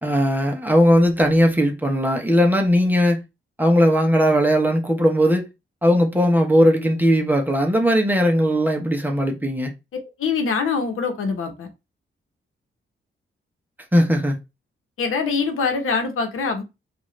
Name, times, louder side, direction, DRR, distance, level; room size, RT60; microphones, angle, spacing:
voice 1, 0.0-3.2 3.6-5.5 5.8-9.7 13.9-14.4, equal, 10° right, 0.8 m, -18 dB
voice 2, 9.9-11.7 15.0-16.6, left 5 dB, 85° left, 1.0 m, -24 dB
4.7 x 2.5 x 3.1 m
wide cardioid pair, 130°, 21 cm